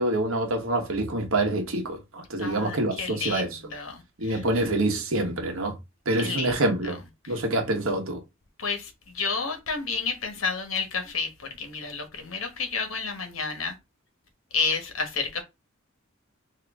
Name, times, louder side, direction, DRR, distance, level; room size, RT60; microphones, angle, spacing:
voice 1, 0.0-3.6 4.2-5.7 6.1-7.0 7.3-8.2, right 2 dB, 80° right, 1.1 m, -26 dB
voice 2, 2.4-4.4 6.2-6.6 6.8-6.9 7.2-7.4 8.6-11.3 11.6-13.7 14.5-15.4, left 5 dB, 80° left, 1.1 m, -30 dB
3.9 x 2.8 x 3.5 m
head